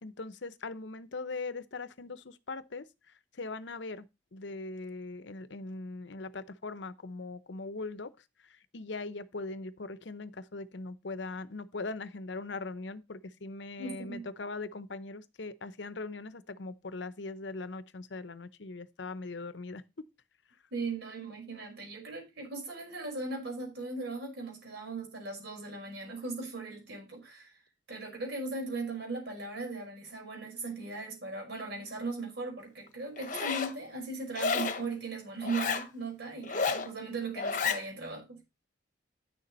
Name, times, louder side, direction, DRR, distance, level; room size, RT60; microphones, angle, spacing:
voice 1, 0.0-4.1 4.3-8.1 8.4-20.0, left 3 dB, 70° left, 0.8 m, -40 dB
voice 2, 13.8-14.3 20.7-27.6 27.9-38.4, right 3 dB, 60° right, 5.5 m, -38 dB
Zipper (clothing), 33.2-33.7 34.3-34.8 35.4-35.9 36.4-36.9 37.4-37.8, left 5 dB, 45° left, 1.1 m, -31 dB
10.0 x 6.8 x 4.3 m
head